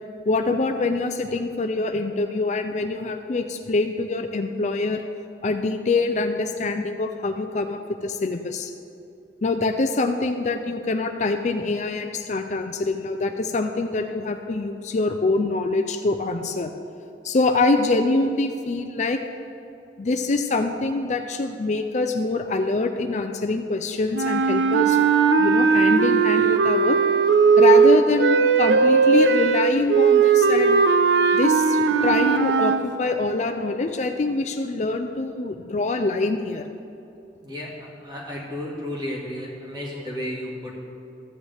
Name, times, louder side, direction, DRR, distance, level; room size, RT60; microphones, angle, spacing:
voice 1, 0.3-5.0 5.4-8.7 9.4-16.7 17.2-19.2 20.0-25.0 25.4-27.0 27.6-30.8 31.3-36.6, left 3 dB, 40° left, 6 dB, 0.4 m, -24 dB
sound 1, 24.1-32.8, right 5 dB, 80° right, 0.5 m, -18 dB
voice 2, 37.4-40.7, left 1 dB, 25° right, -4 dB, 2.1 m, -33 dB
14.0 x 8.6 x 3.4 m, 2.7 s
head